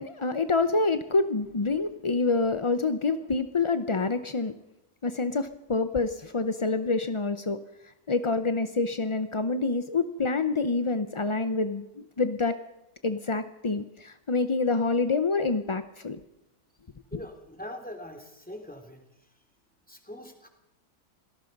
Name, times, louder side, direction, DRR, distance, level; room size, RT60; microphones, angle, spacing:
voice 1, 0.0-4.5 5.0-7.6 8.1-12.6 13.0-16.2, left 3 dB, 40° left, 10 dB, 0.4 m, -27 dB
voice 2, 17.1-19.0 19.9-20.5, left 1 dB, 5° left, 3 dB, 2.9 m, -42 dB
27.0 x 18.0 x 5.4 m, 0.91 s
omnidirectional pair, 1.7 m